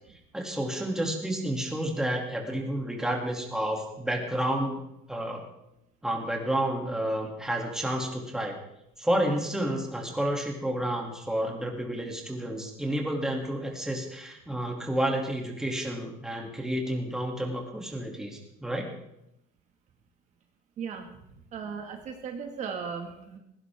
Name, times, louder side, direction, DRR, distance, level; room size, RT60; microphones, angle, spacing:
voice 1, 0.3-4.8 5.1-5.4 6.0-8.6 9.0-18.9, right 1 dB, 5° right, 0 dB, 2.5 m, -30 dB
voice 2, 20.8-21.1 21.5-23.4, right 6 dB, 40° right, 4 dB, 2.0 m, -36 dB
18.5 x 17.0 x 3.6 m, 0.82 s
cardioid pair, 150°, 19 cm